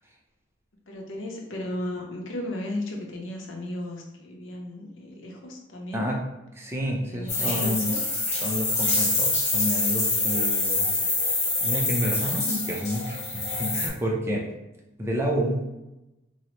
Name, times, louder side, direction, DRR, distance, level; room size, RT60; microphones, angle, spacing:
voice 1, 0.9-6.1 7.1-8.0, left 1 dB, 80° left, 0 dB, 0.7 m, -35 dB
voice 2, 6.6-7.9 8.4-10.9 11.3-14.5 15.0-15.6, equal, 15° right, -2 dB, 0.4 m, -29 dB
sound 1, 7.3-13.9, left 2 dB, 35° left, 0.9 m, -26 dB
3.9 x 2.0 x 3.0 m, 0.96 s
head